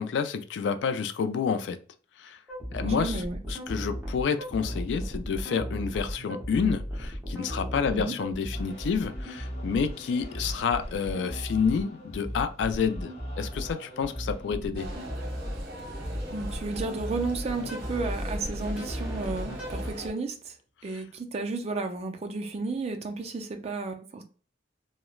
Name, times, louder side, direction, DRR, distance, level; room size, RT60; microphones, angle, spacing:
voice 1, 0.0-1.8 2.2-2.4 2.7-3.2 3.5-14.9 20.9-21.0, left 6 dB, 70° left, 0.3 m, -29 dB
sound 1, 2.5-19.9, equal, 10° right, 0.7 m, -36 dB
voice 2, 2.8-3.4 7.9-8.1 16.3-20.6 20.8-24.2, right 3 dB, 35° right, 0.4 m, -33 dB
sound 2, 8.5-14.5, equal, 35° left, 0.7 m, -48 dB
sound 3, 14.7-20.1, equal, 55° right, 0.9 m, -40 dB
3.0 x 2.0 x 2.3 m
head